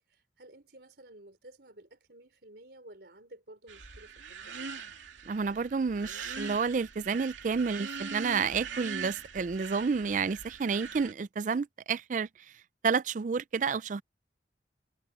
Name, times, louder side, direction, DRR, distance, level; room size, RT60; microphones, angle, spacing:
voice 1, 0.0-4.7, right 1 dB, 60° right, 3.9 m, -53 dB
sound 1, 3.7-11.1, right 5 dB, 90° right, 2.8 m, -42 dB
voice 2, 5.3-12.3 12.8-14.0, right 5 dB, 45° right, 0.4 m, -30 dB
head